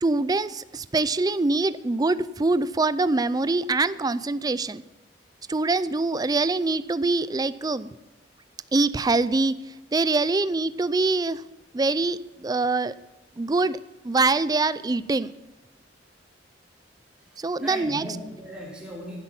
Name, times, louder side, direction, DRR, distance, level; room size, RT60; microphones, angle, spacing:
voice 1, 0.0-4.8 5.5-8.0 8.7-9.6 9.9-11.4 11.7-13.0 13.4-13.8 14.0-15.3 17.4-18.1, right 3 dB, 20° right, 16 dB, 0.4 m, -24 dB
voice 2, 17.2-19.2, equal, 5° right, -4 dB, 4.1 m, -38 dB
15.5 x 8.2 x 6.0 m, 1.0 s
head